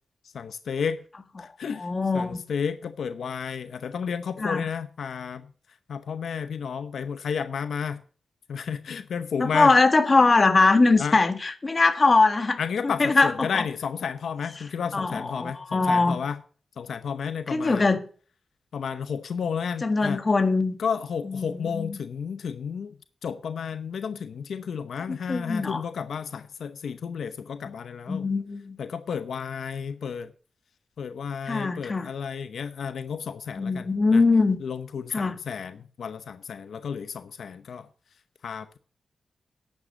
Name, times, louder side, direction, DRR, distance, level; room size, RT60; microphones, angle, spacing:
voice 1, 0.3-1.0 1.4-1.9 2.1-5.5 5.9-8.0 8.5-9.7 11.0-11.2 12.6-16.4 16.8-17.8 18.7-20.2 20.8-22.9 23.2-28.3 28.8-30.3 31.0-34.2 34.6-37.9 38.4-38.8, left 6 dB, 80° left, 0.8 m, -32 dB
voice 2, 1.8-2.4 4.4-4.7 9.4-13.6 14.9-16.2 17.5-18.0 19.8-20.8 21.3-22.0 25.1-25.8 28.1-28.8 31.5-32.1 33.6-34.6 35.1-35.4, left 3 dB, 30° left, 1.6 m, -22 dB
11.5 x 8.9 x 6.5 m
wide cardioid pair, 130°, 0 cm